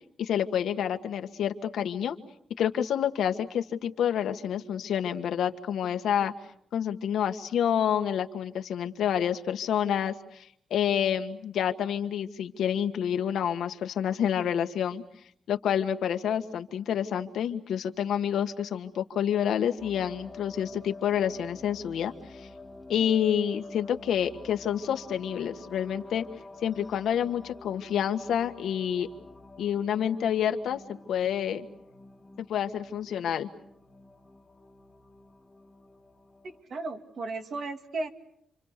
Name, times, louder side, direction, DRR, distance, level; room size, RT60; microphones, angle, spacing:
voice 1, 0.2-2.2 2.6-6.3 6.7-15.0 15.5-22.1 22.9-26.2 26.6-29.1 29.6-30.8 31.1-31.6 32.5-33.5, left 9 dB, 75° left, 7 dB, 1.6 m, -28 dB
sound 1, 19.8-36.6, left 2 dB, 10° left, 1.6 m, -48 dB
voice 2, 36.4-38.1, right 3 dB, 50° right, 5 dB, 2.5 m, -35 dB
29.0 x 27.0 x 6.8 m, 0.71 s
wide cardioid pair, 155°, 0 cm